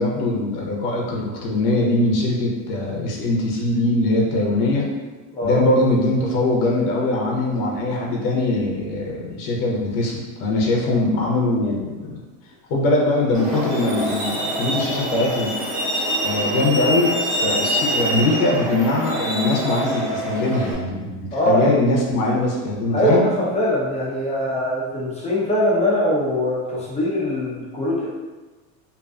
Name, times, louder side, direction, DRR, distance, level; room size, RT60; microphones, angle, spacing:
voice 1, 0.0-4.9 5.4-12.2 12.7-15.5 16.2-21.2 21.5-23.2, left 2 dB, 55° left, -2 dB, 0.8 m, -21 dB
Truck, 13.3-20.7, right 1 dB, 30° right, 0.9 m, -25 dB
voice 2, 21.3-21.8 22.9-28.1, equal, 15° left, -6 dB, 0.7 m, -21 dB
2.6 x 2.4 x 2.3 m, 1.2 s
supercardioid pair, 125°, 40 cm